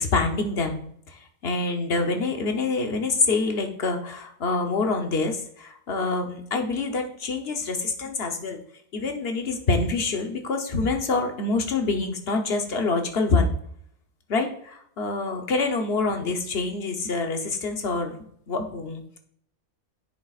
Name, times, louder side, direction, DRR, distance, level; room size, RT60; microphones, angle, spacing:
voice 1, 0.0-8.6 8.9-13.5 14.3-19.2, left 3 dB, 50° left, 4 dB, 1.2 m, -26 dB
9.9 x 7.5 x 2.5 m, 0.67 s
omnidirectional pair, 1.5 m